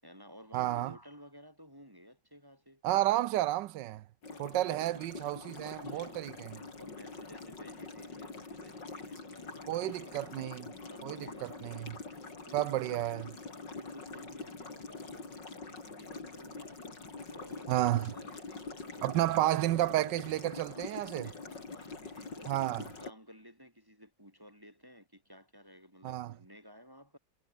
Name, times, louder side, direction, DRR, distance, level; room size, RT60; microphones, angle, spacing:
voice 1, 0.0-2.8 4.3-4.8 5.6-6.4 6.8-11.8 12.4-13.1 13.6-16.8 17.3-19.7 20.7-22.6 23.0-27.2, equal, 10° right, 6.9 m, -55 dB
voice 2, 0.5-0.9 2.8-4.0 4.4-6.5 9.7-10.6 11.0-11.2 11.4-11.9 12.5-13.3 17.7-18.1 19.0-21.3 22.5-22.8 26.0-26.3, right 14 dB, 90° right, 1.4 m, -31 dB
sound 1, 4.2-23.1, left 3 dB, 80° left, 4.9 m, -45 dB
omnidirectional pair, 1.9 m